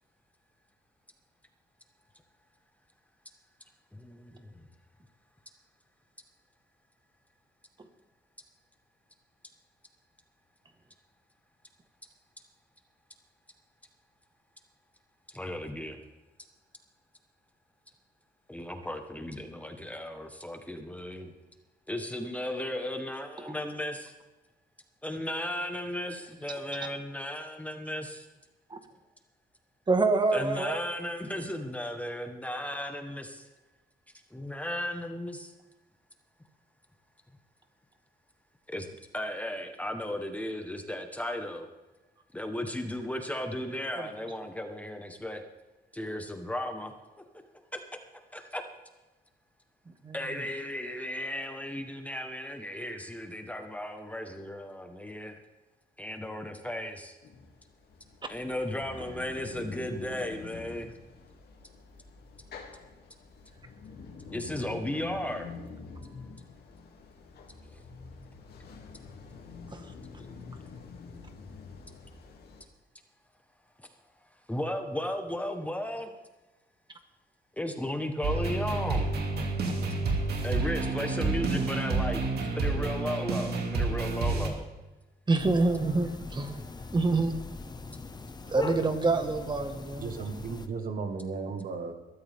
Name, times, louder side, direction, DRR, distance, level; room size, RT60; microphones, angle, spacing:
voice 1, 3.9-4.6 15.3-16.0 18.5-21.3 21.9-24.1 25.0-28.2 30.3-33.4 34.3-35.5 38.7-38.9 39.1-41.7 42.3-45.4 45.9-46.9 47.7-47.8 48.3-48.6 50.1-55.4 56.0-57.2 58.3-60.9 64.3-65.5 70.2-70.4 74.5-76.1 77.6-79.1 80.4-84.6, left 1 dB, 10° left, 5 dB, 1.4 m, -35 dB
voice 2, 29.9-30.8 50.0-50.4 69.7-69.8 85.3-86.6 86.9-87.3 88.5-90.1, right 3 dB, 25° right, 7 dB, 1.7 m, -26 dB
sound 1, 57.2-72.6, left 5 dB, 75° left, 2.8 m, -46 dB
sound 2, 78.2-84.5, right 3 dB, 80° right, 2.6 m, -29 dB
sound 3, 85.4-90.7, left 3 dB, 25° left, 1.0 m, -41 dB
voice 3, 90.0-91.9, right 4 dB, 60° right, 6 dB, 1.7 m, -35 dB
21.0 x 13.5 x 3.7 m, 1.1 s
cardioid pair, 125°, 17 cm